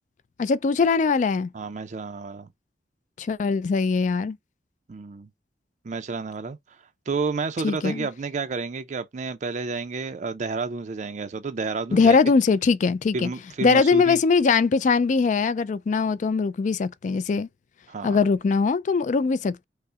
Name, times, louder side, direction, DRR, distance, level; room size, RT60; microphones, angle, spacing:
voice 1, 0.4-1.5 3.2-4.4 7.6-8.1 11.9-13.3 13.6-17.5 18.0-19.6, left 4 dB, 45° left, 0.3 m, -21 dB
voice 2, 1.5-2.5 4.9-5.3 5.8-6.8 7.1-12.2 13.1-14.2 17.9-18.2, right 4 dB, 45° right, 0.4 m, -30 dB
5.5 x 2.0 x 3.5 m
head